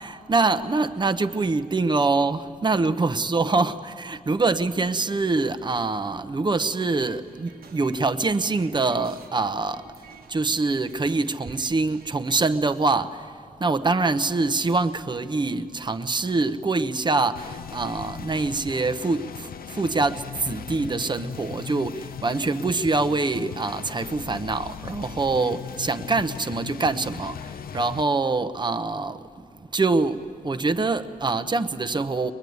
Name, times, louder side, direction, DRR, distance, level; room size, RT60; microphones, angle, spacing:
voice 1, 0.0-9.9 10.3-29.4 29.7-32.3, right 3 dB, 30° right, 0.9 m, -25 dB
sound 1, 6.9-12.3, right 5 dB, 85° right, 1.4 m, -50 dB
sound 2, 17.4-28.0, left 8 dB, 80° left, 0.5 m, -38 dB
23.5 x 22.5 x 9.4 m
wide cardioid pair, 140°, 15 cm